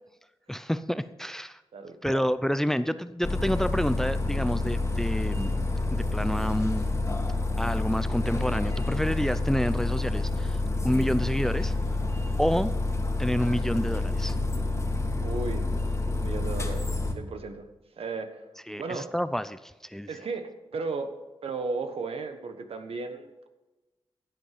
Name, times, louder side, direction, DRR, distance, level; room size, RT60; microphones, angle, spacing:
voice 1, 0.5-1.6 2.0-5.5 5.9-6.9 7.6-10.6 10.8-12.0 12.4-12.7 13.1-14.4 18.7-20.1, equal, 5° left, 14 dB, 0.5 m, -28 dB
voice 2, 1.7-2.3 15.2-15.6 16.1-17.7 18.0-18.4 18.8-19.1 20.1-21.1 21.4-23.5, right 4 dB, 80° right, 7 dB, 1.3 m, -35 dB
sound 1, 3.2-17.1, left 2 dB, 30° left, 2.1 m, -28 dB
16.0 x 8.0 x 5.0 m, 1.1 s
cardioid pair, 75°, 10 cm